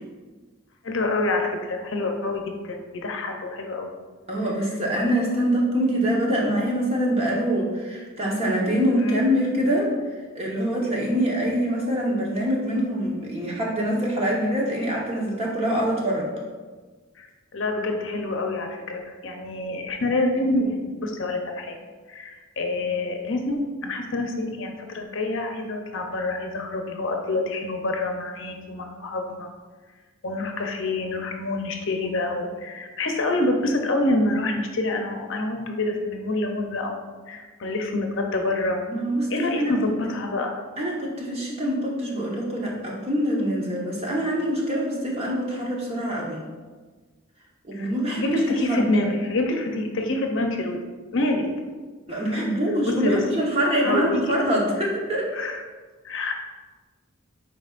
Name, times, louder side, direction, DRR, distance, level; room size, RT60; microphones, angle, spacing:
voice 1, 0.8-3.9 9.0-9.5 17.2-17.3 17.5-21.8 22.1-29.5 30.2-38.8 39.3-40.6 47.7-50.8 51.1-51.5 52.1-52.4 52.9-53.2 53.8-54.2 55.3-55.6 56.0-56.3, left 2 dB, 60° left, 3 dB, 0.7 m, -27 dB
voice 2, 4.3-9.9 10.3-16.3 38.9-39.7 40.8-46.4 47.6-48.8 52.1-55.3, equal, 30° right, -3 dB, 1.2 m, -24 dB
9.5 x 4.1 x 2.5 m, 1.4 s
head